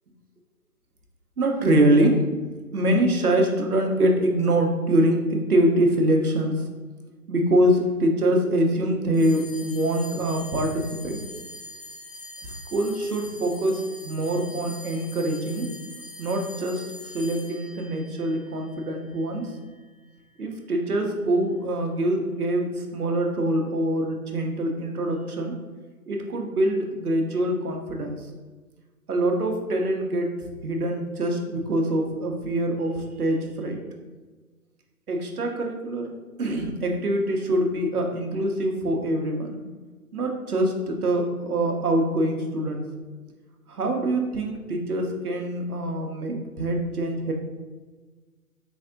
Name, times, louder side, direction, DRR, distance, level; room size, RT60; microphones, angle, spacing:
voice 1, 1.4-2.3 2.7-6.7 7.3-11.2 12.4-15.8 16.2-19.6 20.4-25.6 26.1-28.3 29.1-30.3 30.6-33.8 35.1-39.6 40.1-42.8 43.7-47.3, right 1 dB, 70° right, 3 dB, 0.8 m, -24 dB
sound 1, 9.1-19.8, left 1 dB, 25° left, 1.0 m, -43 dB
4.0 x 3.5 x 2.5 m, 1.3 s
figure-of-eight pair, 140°, 45 cm